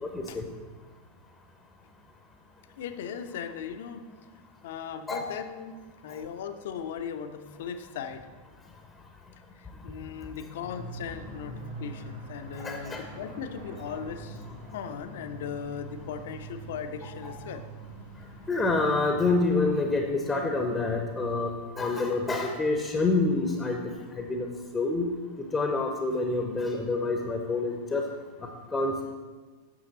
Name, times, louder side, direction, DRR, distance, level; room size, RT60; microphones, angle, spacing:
voice 1, 0.0-0.4 5.1-5.3 12.5-13.0 17.2-17.4 18.5-24.5 24.7-28.1 28.7-29.2, left 3 dB, 15° left, 4 dB, 0.7 m, -27 dB
voice 2, 2.8-4.0 4.6-8.3 9.6-14.4 14.7-17.6, left 7 dB, 55° left, 9 dB, 0.6 m, -38 dB
sound 1, 10.6-19.7, right 2 dB, 70° right, 2.7 m, -44 dB
9.0 x 6.5 x 4.1 m, 1.4 s
figure-of-eight pair, 90°, 0 cm